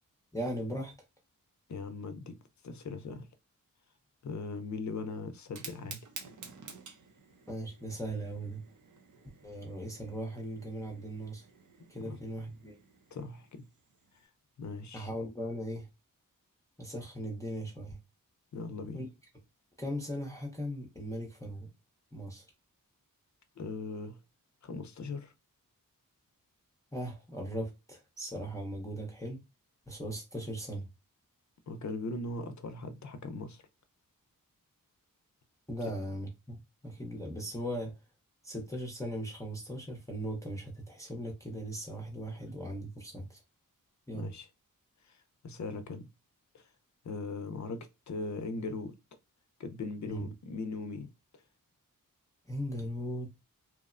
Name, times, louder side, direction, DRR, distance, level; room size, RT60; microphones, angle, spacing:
voice 1, 0.3-0.9 7.5-8.6 9.4-11.5 11.9-12.8 14.9-15.9 16.8-18.0 18.9-19.1 19.8-21.7 22.1-22.5 26.9-29.4 29.9-30.9 35.7-38.0 38.4-43.4 44.1-44.3 50.1-50.3 52.5-53.3, equal, 10° left, 0.6 m, -38 dB
voice 2, 1.7-2.4 2.6-3.3 4.2-6.1 12.0-12.2 13.1-13.6 14.6-15.1 18.5-19.0 23.6-24.2 24.6-25.3 31.7-33.6 44.1-44.5 45.0-45.2 45.4-46.1 46.5-46.7 47.0-48.9 49.6-51.1, left 3 dB, 55° left, 0.5 m, -39 dB
Fire, 5.4-14.3, right 5 dB, 60° right, 0.6 m, -52 dB
2.9 x 2.0 x 2.4 m
wide cardioid pair, 100°, 34 cm